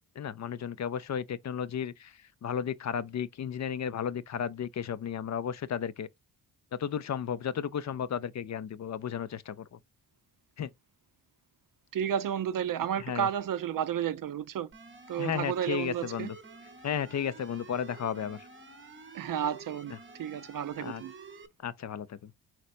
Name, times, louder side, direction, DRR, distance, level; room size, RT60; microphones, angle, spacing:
voice 1, 0.2-6.1 6.8-9.8 10.6-10.7 13.0-13.3 15.2-16.3 16.8-18.5 20.8-21.0 21.6-22.3, left 8 dB, 40° left, 0.5 m, -34 dB
voice 2, 11.9-14.7 15.1-16.3 19.1-21.1, right 9 dB, 50° right, 0.5 m, -32 dB
sound 1, 14.7-21.5, right 4 dB, 30° right, 0.8 m, -49 dB
4.5 x 4.0 x 2.5 m
supercardioid pair, 50°, 42 cm